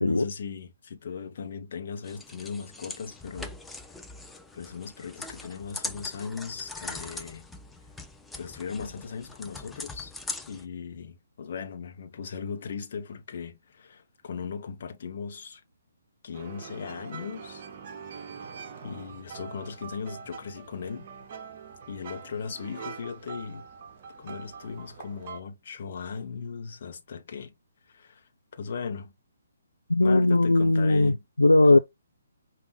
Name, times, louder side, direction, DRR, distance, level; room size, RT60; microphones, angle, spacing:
voice 1, 0.0-3.6 4.5-7.5 8.4-10.1 10.5-15.6 16.2-17.6 18.8-21.1 21.9-23.7 24.2-27.5 27.9-29.1 30.0-31.2 31.6-31.8, left 6 dB, 50° left, 1.0 m, -38 dB
sound 1, 2.0-10.6, left 2 dB, 5° left, 0.5 m, -41 dB
sound 2, 16.3-25.4, right 6 dB, 40° right, 1.1 m, -43 dB
voice 2, 29.9-31.8, left 2 dB, 80° left, 0.4 m, -19 dB
5.3 x 2.8 x 3.2 m
figure-of-eight pair, 135°, 0 cm